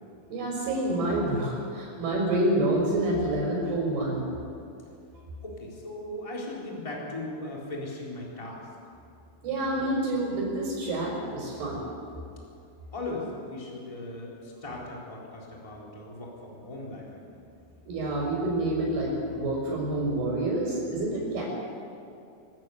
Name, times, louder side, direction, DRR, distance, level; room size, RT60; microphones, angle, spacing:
voice 1, 0.3-4.3 9.4-11.9 17.9-21.4, right 1 dB, 55° right, -5 dB, 7.1 m, -28 dB
voice 2, 5.4-8.7 12.9-17.2, left 2 dB, 10° left, -3 dB, 3.1 m, -38 dB
25.5 x 12.5 x 8.5 m, 2.6 s
omnidirectional pair, 5.7 m